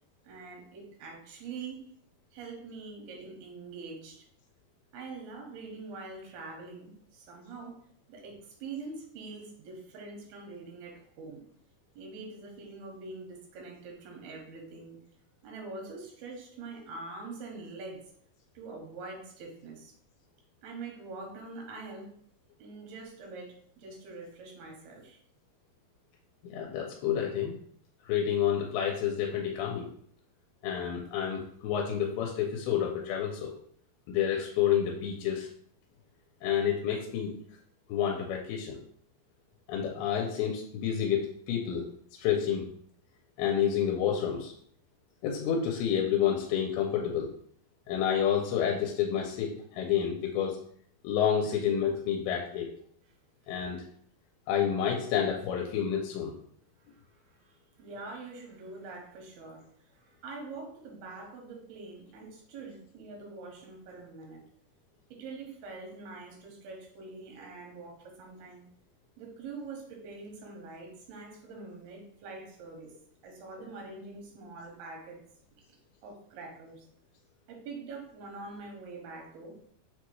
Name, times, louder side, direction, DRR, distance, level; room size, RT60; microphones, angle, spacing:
voice 1, 0.2-1.8 2.3-4.2 4.9-7.8 8.1-11.4 12.0-15.0 15.4-18.0 18.5-19.9 20.6-22.1 22.6-25.2 56.9-57.0 57.3-59.7 59.9-64.4 65.1-68.6 69.2-72.9 73.2-75.2 75.7-75.8 76.0-76.9 77.5-79.6, right 3 dB, 85° right, 0 dB, 2.9 m, -44 dB
voice 2, 26.5-27.6 28.1-29.9 30.6-33.5 34.1-35.5 36.4-37.3 37.9-38.8 39.7-41.9 42.2-42.6 43.4-44.5 45.2-47.3 47.9-50.6 51.0-52.7 53.5-53.8 54.5-56.3, left 8 dB, 90° left, 0 dB, 2.5 m, -29 dB
6.3 x 2.2 x 3.0 m, 0.62 s
omnidirectional pair, 4.4 m